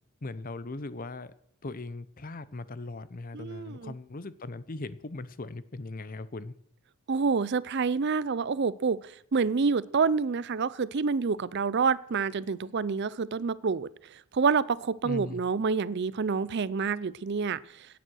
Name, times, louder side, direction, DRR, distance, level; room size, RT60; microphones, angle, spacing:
voice 1, 0.2-1.3 1.6-6.5 15.0-15.4, left 2 dB, 40° left, 16 dB, 0.7 m, -39 dB
voice 2, 3.3-3.9 7.1-13.9 14.3-17.6, right 5 dB, 50° right, 19 dB, 0.5 m, -27 dB
16.5 x 9.3 x 6.3 m, 0.72 s
head